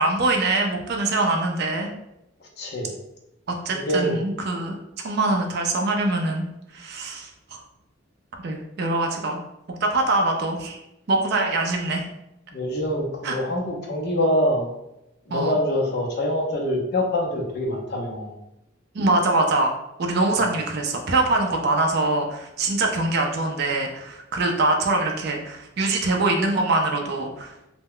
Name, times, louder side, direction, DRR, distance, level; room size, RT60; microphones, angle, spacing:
voice 1, 0.0-1.9 3.5-4.8 5.0-6.5 6.7-7.6 8.4-9.4 9.8-10.8 11.1-12.0 13.2-13.4 15.3-15.6 18.9-19.7 20.0-27.5, right 2 dB, 50° right, 2 dB, 0.4 m, -23 dB
voice 2, 2.6-2.9 3.7-4.2 12.5-14.7 15.3-18.3 20.4-20.5, left 1 dB, 50° left, 0 dB, 0.5 m, -25 dB
2.1 x 2.0 x 3.6 m, 0.88 s
head